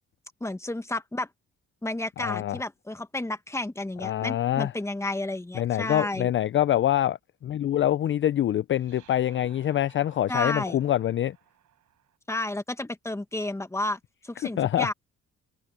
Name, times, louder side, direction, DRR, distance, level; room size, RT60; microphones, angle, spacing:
voice 1, 0.4-1.3 1.8-6.3 10.3-10.8 12.3-14.0 14.2-14.9, left 2 dB, 10° left, 1.4 m, -31 dB
voice 2, 2.2-2.6 4.0-4.7 5.5-11.4 14.6-14.9, left 12 dB, 40° left, 0.4 m, -25 dB
sound 1, 3.9-5.8 8.8-12.2, right 11 dB, 75° right, 4.6 m, -60 dB
cardioid pair, 90°, 30 cm